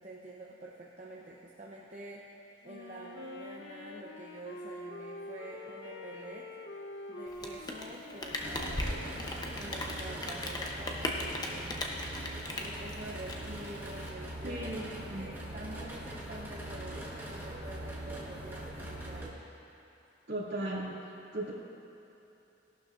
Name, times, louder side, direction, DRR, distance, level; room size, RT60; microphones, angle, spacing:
voice 1, 0.0-6.5 7.1-9.1 9.5-12.0 12.6-14.8 15.2-19.4, right 1 dB, 35° right, -4 dB, 0.8 m, -47 dB
Wind instrument woodwind instrument, 2.6-10.4, left 2 dB, 70° left, 0.8 m, -46 dB
Rain, 7.3-14.1, left 1 dB, 20° left, 0.8 m, -38 dB
sound 1, 8.4-19.3, right 1 dB, 10° right, 1.3 m, -42 dB
voice 2, 14.4-15.3 20.3-20.9 21.3-21.5, right 1 dB, 60° right, -6 dB, 2.4 m, -36 dB
17.0 x 11.5 x 2.6 m, 3.0 s
head